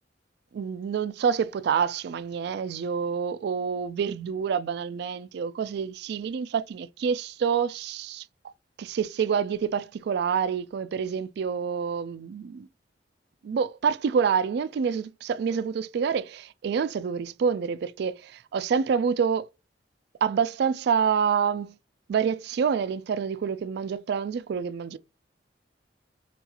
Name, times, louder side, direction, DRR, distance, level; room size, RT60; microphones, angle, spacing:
voice 1, 0.5-8.2 8.8-12.7 13.4-19.5 20.2-21.7 22.1-25.0, right 6 dB, 65° right, 0.3 m, -27 dB
4.5 x 2.4 x 2.8 m
head